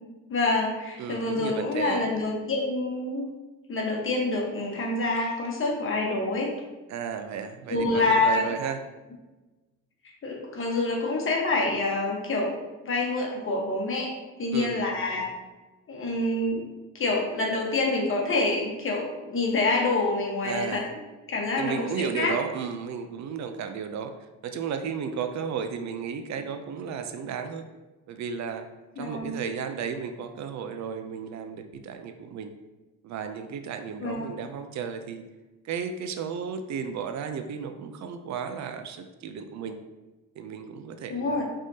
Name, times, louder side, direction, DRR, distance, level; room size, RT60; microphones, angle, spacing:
voice 1, 0.3-3.3 3.7-6.5 7.7-8.5 10.2-12.6 12.8-14.1 14.4-15.3 15.9-16.7 16.9-20.8 21.3-22.3 29.0-29.4 34.0-34.3 41.1-41.4, left 2 dB, 45° left, -1 dB, 1.2 m, -27 dB
voice 2, 1.0-2.1 6.9-8.8 14.5-14.9 20.4-20.9 21.6-24.1 24.4-27.6 28.1-28.7 29.0-32.5 33.0-35.2 35.6-39.8 40.4-41.4, right 6 dB, 65° right, 8 dB, 0.5 m, -34 dB
4.9 x 3.6 x 2.7 m, 1.1 s
cardioid pair, 90°, 30 cm